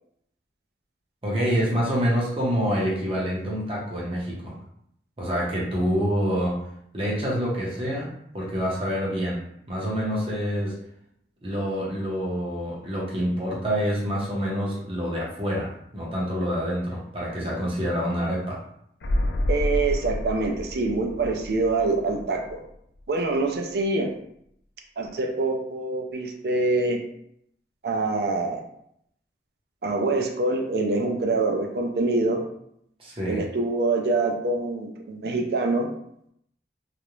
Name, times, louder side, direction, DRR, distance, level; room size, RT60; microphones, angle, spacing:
voice 1, 1.2-4.6 5.2-6.6 6.9-9.4 9.7-10.7 11.4-18.6 33.0-33.4, equal, 30° right, -4 dB, 0.7 m, -27 dB
sound 1, 19.0-22.8 23.0-23.1, left 1 dB, 85° left, 0.4 m, -29 dB
voice 2, 19.5-22.6 23.1-24.1 25.0-27.0 27.8-28.6 29.8-32.4 33.3-35.9, right 3 dB, 65° right, 2 dB, 0.4 m, -25 dB
2.4 x 2.0 x 3.0 m, 0.72 s
head